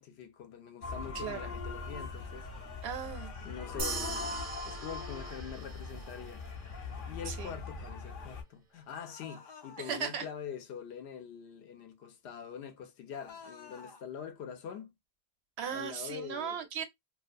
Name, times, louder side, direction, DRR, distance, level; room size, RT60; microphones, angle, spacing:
voice 1, 0.0-2.5 3.4-6.4 7.1-14.9 15.7-16.6, left 8 dB, 85° left, 0.9 m, -44 dB
sound 1, 0.8-8.4, left 3 dB, 60° left, 0.9 m, -41 dB
voice 2, 1.1-1.5 2.8-3.3 7.3-7.5 9.8-10.3 15.6-16.8, right 7 dB, 80° right, 0.9 m, -37 dB
sound 2, 3.5-4.5 9.0-10.0 13.1-14.0, left 5 dB, 40° left, 0.4 m, -50 dB
sound 3, 3.8-6.5, right 4 dB, 50° right, 0.4 m, -41 dB
2.4 x 2.3 x 2.4 m
omnidirectional pair, 1.1 m